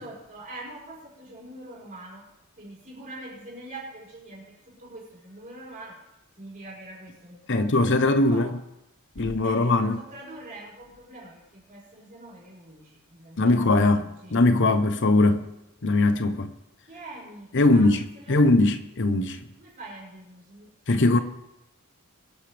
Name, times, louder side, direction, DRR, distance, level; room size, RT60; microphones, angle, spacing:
voice 1, 0.0-2.3 2.6-6.1 6.4-8.6 9.2-14.4 16.9-18.4 19.6-21.2, right 2 dB, 40° right, 5.8 m, -44 dB
voice 2, 7.5-8.6 9.2-10.0 13.4-15.5 15.8-16.5 17.5-19.4 20.9-21.2, left 2 dB, 55° left, 0.8 m, -21 dB
23.0 x 10.0 x 3.4 m
head